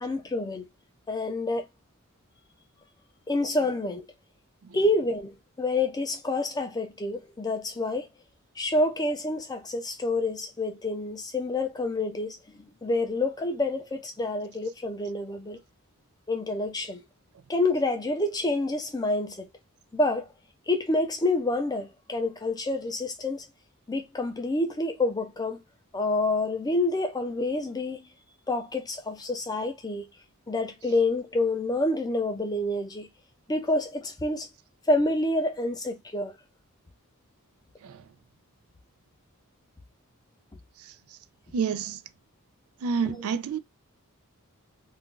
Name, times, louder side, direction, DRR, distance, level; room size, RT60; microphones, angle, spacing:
voice 1, 0.0-0.6 1.1-1.6 3.3-4.0 4.7-8.1 8.6-12.4 12.8-15.6 16.3-17.0 17.5-19.5 19.9-20.3 20.7-23.4 23.9-25.6 25.9-28.1 28.5-30.1 30.5-33.1 33.5-34.5 34.9-36.3 43.0-43.2, left 2 dB, 15° left, 0.5 m, -28 dB
voice 2, 41.5-42.0 42.8-43.6, right 6 dB, 70° right, 0.4 m, -28 dB
2.5 x 2.2 x 3.7 m
head